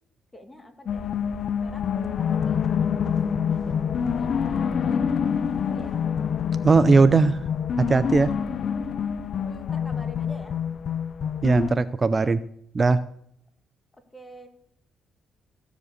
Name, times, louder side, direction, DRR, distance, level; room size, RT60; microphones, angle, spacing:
voice 1, 0.3-1.1 1.6-4.3 4.6-5.0 5.3-6.0 9.3-10.6 14.1-14.5, left 1 dB, 15° left, 6 dB, 1.9 m, -46 dB
sound 1, 0.9-11.7, left 7 dB, 55° left, 0.6 m, -26 dB
voice 2, 6.6-7.4 7.8-8.3 11.4-12.4 12.7-13.0, right 4 dB, 30° right, 12 dB, 0.4 m, -19 dB
14.5 x 5.1 x 8.1 m, 0.71 s
cardioid pair, 90°, 0 cm